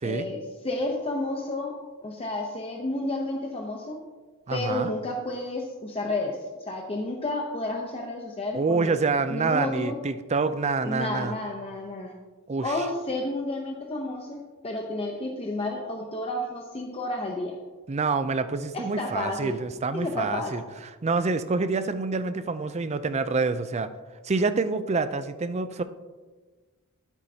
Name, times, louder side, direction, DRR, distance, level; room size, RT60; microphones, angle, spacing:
voice 1, 0.0-1.8 2.0-4.0 4.5-9.0 9.3-10.0 10.8-12.1 12.6-17.6 18.7-19.6 19.9-20.7, left 2 dB, 25° left, 0 dB, 0.7 m, -31 dB
voice 2, 4.5-4.9 8.5-11.4 12.5-12.7 17.9-20.6 21.0-23.9 24.2-25.8, right 4 dB, 30° right, 11 dB, 0.4 m, -27 dB
12.5 x 8.3 x 2.8 m, 1.3 s
head